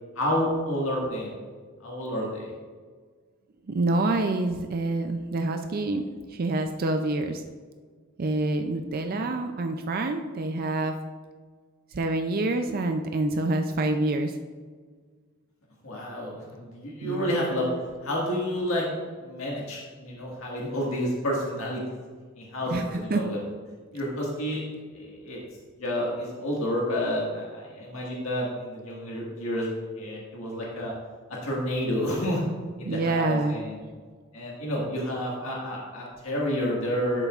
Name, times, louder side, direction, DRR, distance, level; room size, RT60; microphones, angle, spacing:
voice 1, 0.2-1.3 1.8-2.5 9.0-9.2 15.8-17.7 18.0-21.8 22.4-23.4 23.9-25.4 25.8-29.7 30.0-30.9 31.4-32.4 32.8-33.8 34.3-37.3, equal, 70° left, -3 dB, 1.8 m, -30 dB
voice 2, 3.7-7.4 8.2-10.9 11.9-14.3 17.0-17.3 22.7-22.9 23.1-23.2 32.9-33.6, right 2 dB, 45° right, 6 dB, 0.4 m, -27 dB
12.0 x 6.8 x 2.4 m, 1.5 s
head